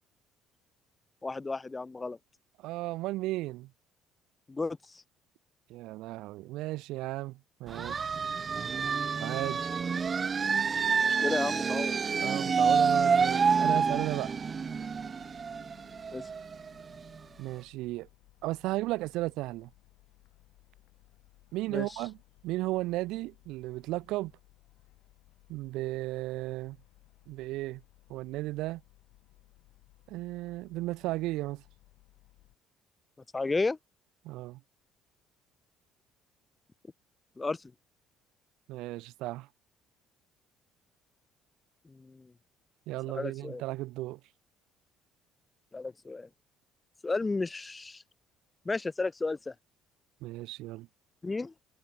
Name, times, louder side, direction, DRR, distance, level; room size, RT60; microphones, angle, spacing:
voice 1, 1.2-2.2 4.5-5.0 11.0-12.0 16.1-16.3 21.7-21.9 33.3-33.8 37.4-37.7 41.8-42.3 43.1-43.6 45.7-46.3 47.0-48.0 48.6-49.5 51.2-51.5, left 3 dB, 20° left, 1.7 m, -33 dB
voice 2, 2.6-3.7 5.7-8.2 9.2-9.6 12.2-14.4 17.4-18.1 18.4-19.7 21.5-22.2 22.4-24.3 25.5-26.8 27.3-27.8 28.1-28.8 30.1-31.6 34.2-34.6 38.7-39.5 42.9-44.2 50.2-50.9, right 18 dB, 80° right, 0.8 m, -35 dB
sound 1, 7.7-17.2, right 5 dB, 35° right, 0.6 m, -28 dB
sound 2, 12.6-32.6, left 18 dB, 80° left, 4.1 m, -62 dB
cardioid pair, 100°, 0 cm